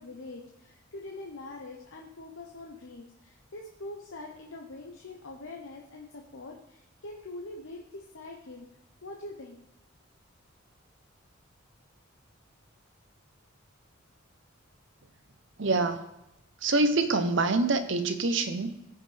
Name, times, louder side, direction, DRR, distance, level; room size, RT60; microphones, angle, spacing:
voice 1, 0.0-8.7 9.0-9.6, left 2 dB, 70° left, 0 dB, 0.9 m, -44 dB
voice 2, 15.6-16.0 16.6-18.7, right 3 dB, 60° right, 9 dB, 0.8 m, -25 dB
15.5 x 5.6 x 3.4 m, 0.90 s
head